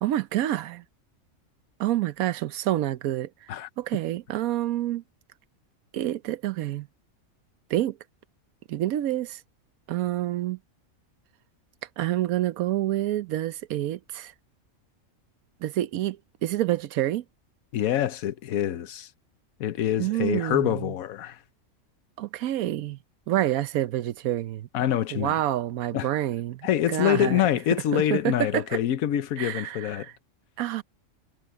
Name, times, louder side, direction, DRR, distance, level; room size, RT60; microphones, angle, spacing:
voice 1, 0.0-0.8 1.8-3.3 3.8-5.0 5.9-6.9 7.7-8.0 8.7-9.4 9.9-10.6 12.0-14.3 15.6-17.2 20.0-20.9 22.2-23.0 23.3-24.7 25.1-27.4 27.9-28.8 29.4-30.1 30.6-30.8, right 13 dB, 90° right, 1.1 m, -28 dB
voice 2, 17.7-19.1 19.6-21.4 24.7-25.3 25.9-26.1 26.6-30.1, left 11 dB, 85° left, 1.2 m, -25 dB
omnidirectional pair, 1.5 m